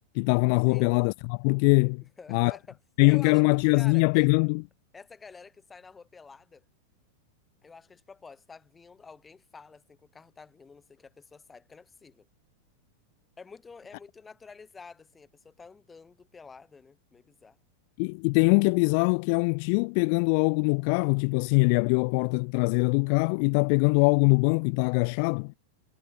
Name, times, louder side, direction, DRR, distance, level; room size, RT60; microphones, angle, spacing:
voice 1, 0.1-2.0 2.3-2.5 3.0-4.6 18.0-25.5, left 37 dB, 50° left, 0.7 m, -23 dB
voice 2, 2.2-2.8 3.1-3.4 3.7-4.3 4.9-6.6 7.6-12.3 13.4-17.6, left 5 dB, 15° left, 4.1 m, -49 dB
supercardioid pair, 135°, 0 cm